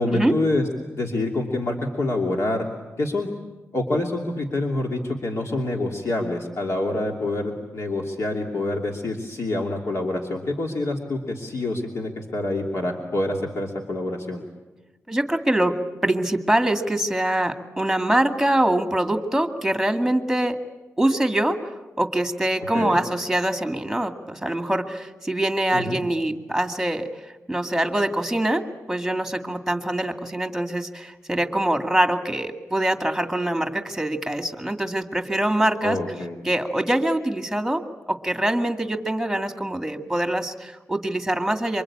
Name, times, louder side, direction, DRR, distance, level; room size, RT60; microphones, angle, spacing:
voice 1, 0.0-2.7 3.0-3.3 3.7-14.4 22.7-23.0 25.7-26.0 35.8-36.4, left 2 dB, 60° left, 1 dB, 2.8 m, -26 dB
voice 2, 15.1-15.7 16.0-20.6 21.0-21.7 22.0-27.1 27.5-28.6 28.9-36.0 36.4-37.8 38.1-41.8, right 1 dB, 5° right, 6 dB, 2.1 m, -24 dB
27.0 x 24.0 x 8.7 m, 1.1 s
wide cardioid pair, 120°, 6 cm